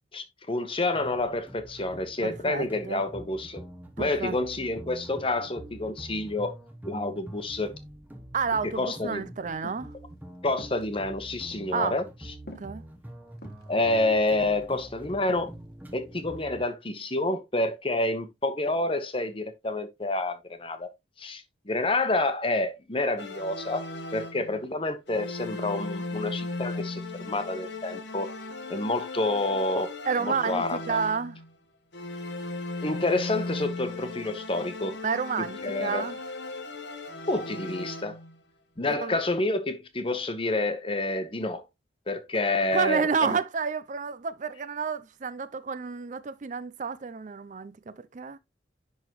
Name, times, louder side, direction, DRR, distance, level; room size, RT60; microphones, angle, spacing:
voice 1, 0.1-3.6 4.0-6.5 6.8-7.7 8.7-9.3 10.4-12.0 13.7-15.5 15.9-20.9 21.2-28.3 28.7-29.9 30.2-31.0 32.8-35.0 35.6-36.1 37.3-38.2 38.8-41.6 42.1-43.4, left 2 dB, 30° left, 1.0 m, -28 dB
sound 1, 0.9-16.6, right 1 dB, 10° right, 0.9 m, -45 dB
voice 2, 2.2-3.0 4.0-4.4 8.3-9.9 11.7-12.0 12.6-12.8 30.1-31.4 35.0-36.2 38.9-39.2 42.7-48.4, right 5 dB, 40° right, 0.4 m, -30 dB
sound 2, 9.6-9.9 10.6-10.8 11.5-11.7 12.5-12.7 13.4-13.6 14.4-14.8 15.1-15.6 16.1-16.4, equal, 55° left, 1.4 m, -45 dB
sound 3, 23.2-24.7 25.1-31.5 31.9-38.4, left 2 dB, 70° left, 1.1 m, -37 dB
10.5 x 3.8 x 3.0 m
head